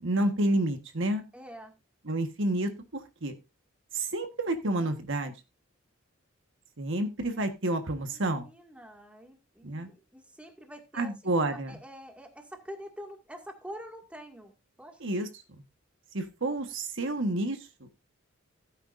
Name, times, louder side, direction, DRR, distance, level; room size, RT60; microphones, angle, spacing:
voice 1, 0.0-1.2 2.1-3.3 3.9-5.3 6.8-8.5 9.6-9.9 10.9-11.8 15.0-15.3 16.1-17.6, right 1 dB, 60° right, 7 dB, 1.5 m, -29 dB
voice 2, 1.3-1.8 8.1-15.0, equal, 5° right, 3 dB, 2.1 m, -46 dB
16.0 x 9.0 x 2.6 m, 0.26 s
head